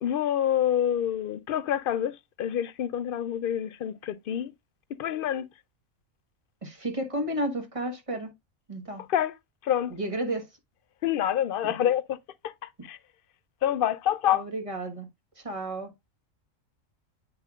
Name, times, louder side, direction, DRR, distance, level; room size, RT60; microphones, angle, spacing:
voice 1, 0.0-4.5 5.0-5.5 9.1-9.3 9.6-9.9 11.0-12.2 12.4-13.0 13.6-14.4, left 10 dB, 60° left, 0.6 m, -27 dB
voice 2, 6.6-8.3 8.7-9.1 9.9-10.5 11.6-11.7 14.3-15.1 15.3-15.9, right 1 dB, 25° right, 1.4 m, -32 dB
8.9 x 5.5 x 2.3 m
omnidirectional pair, 1.4 m